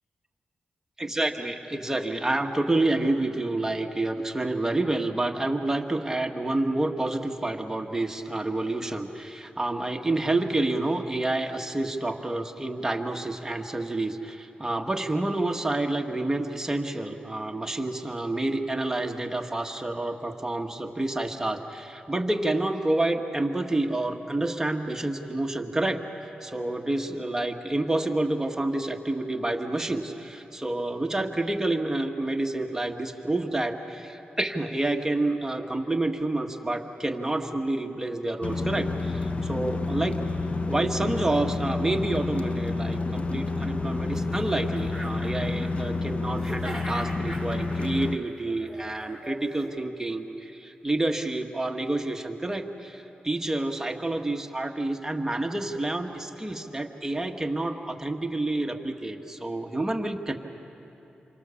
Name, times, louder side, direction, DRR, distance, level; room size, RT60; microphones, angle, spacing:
voice 1, 1.0-26.0 26.4-40.2 40.7-60.3, right 2 dB, 15° right, 3 dB, 1.7 m, -28 dB
sound 1, 38.4-48.2, left 3 dB, 40° left, 0.9 m, -29 dB
sound 2, 44.1-44.2 44.5-46.1 46.3-49.7, right 1 dB, ahead, 6.1 m, -41 dB
28.5 x 24.5 x 7.1 m, 2.9 s
cardioid pair, 75°, 3 cm